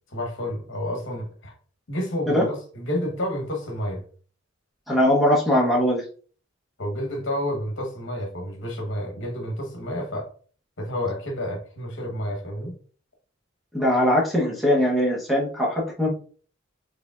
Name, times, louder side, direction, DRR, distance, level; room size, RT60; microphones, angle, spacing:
voice 1, 0.1-1.5 1.9-4.0 6.8-10.3 10.8-12.7, left 1 dB, 60° left, 1.1 m, -30 dB
voice 2, 4.9-6.0 13.7-16.1, left 1 dB, ahead, 0.9 m, -21 dB
4.8 x 3.2 x 2.4 m
head